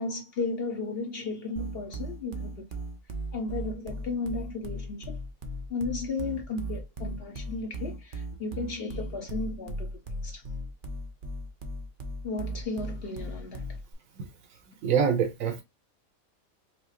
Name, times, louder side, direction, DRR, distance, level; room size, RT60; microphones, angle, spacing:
voice 1, 0.0-2.6 3.3-5.2 5.7-10.5 12.2-13.7, left 3 dB, 50° left, 1.1 m, -34 dB
sound 1, 1.6-13.9, right 1 dB, 50° right, 0.7 m, -37 dB
voice 2, 14.8-15.6, right 7 dB, 75° right, 1.4 m, -25 dB
4.8 x 2.1 x 2.9 m
omnidirectional pair, 1.5 m